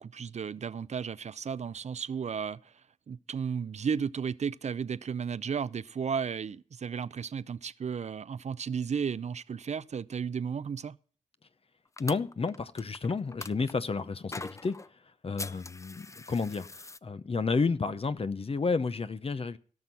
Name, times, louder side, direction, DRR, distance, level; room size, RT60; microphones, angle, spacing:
voice 1, 0.0-2.7 3.1-11.0, right 6 dB, 55° right, 0.5 m, -34 dB
voice 2, 12.0-14.8 15.2-16.7 17.0-19.6, left 4 dB, 45° left, 0.8 m, -31 dB
sound 1, 12.0-13.7 14.3-14.9 15.4-17.0, left 3 dB, 25° left, 0.4 m, -42 dB
17.0 x 6.2 x 5.5 m
cardioid pair, 60°, 13 cm